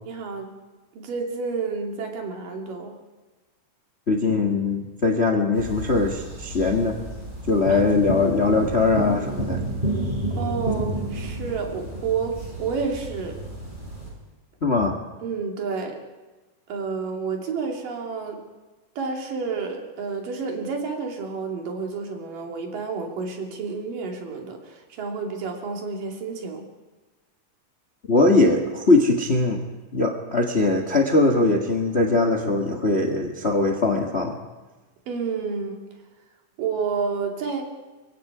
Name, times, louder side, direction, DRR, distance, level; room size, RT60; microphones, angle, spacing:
voice 1, 0.0-0.5 1.0-2.9 7.7-7.8 10.3-13.4 15.2-16.0 16.7-18.4 19.0-26.6 35.1-35.8 36.6-37.6, right 5 dB, 80° right, 2 dB, 4.2 m, -30 dB
voice 2, 4.1-7.0 7.5-9.7 14.6-14.9 28.1-29.6 29.9-34.4, left 3 dB, 40° left, 4 dB, 0.9 m, -21 dB
sound 1, 5.5-14.1, right 2 dB, 15° right, 7.2 m, -30 dB
24.5 x 23.0 x 4.9 m, 1.2 s
omnidirectional pair, 3.8 m